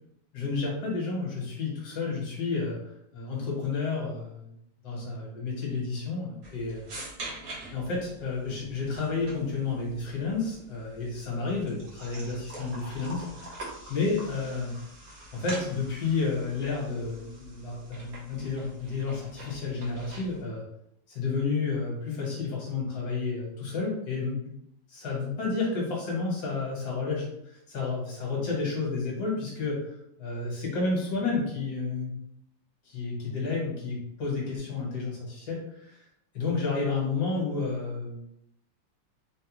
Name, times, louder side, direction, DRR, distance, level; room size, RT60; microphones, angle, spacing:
voice 1, 0.3-2.8 3.1-4.5 4.8-6.8 7.7-13.4 13.9-14.7 15.3-20.6 21.1-24.5 24.9-32.1 32.9-36.0 36.3-38.2, left 4 dB, 55° left, -3 dB, 1.5 m, -31 dB
sound 1, 6.4-20.4, right 1 dB, 55° right, 1.2 m, -45 dB
3.8 x 2.1 x 2.9 m, 0.76 s
omnidirectional pair, 2.2 m